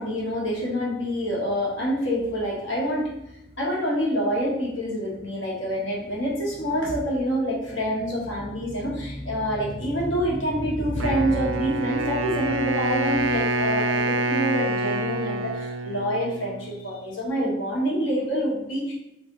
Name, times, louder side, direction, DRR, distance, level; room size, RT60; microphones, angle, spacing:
voice 1, 0.0-3.1 3.6-18.9, equal, 65° left, -4 dB, 1.5 m, -26 dB
Wind instrument woodwind instrument, 11.0-17.0, right 2 dB, 70° right, 0.4 m, -27 dB
3.3 x 3.3 x 3.9 m, 0.84 s
head